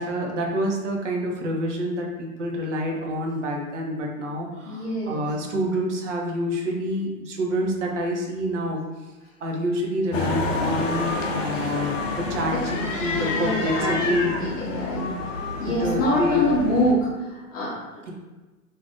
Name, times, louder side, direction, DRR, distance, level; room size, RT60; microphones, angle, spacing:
voice 1, 0.0-8.8 9.4-14.4 15.7-16.5, equal, 55° right, 0 dB, 0.8 m, -27 dB
voice 2, 4.7-5.3 11.5-11.7 12.5-15.1 15.6-18.1, equal, 15° left, -9 dB, 0.5 m, -26 dB
sound 1, 10.1-16.9, left 3 dB, 60° left, 0.6 m, -28 dB
2.7 x 2.4 x 3.4 m, 1.2 s
figure-of-eight pair, 115°, 44 cm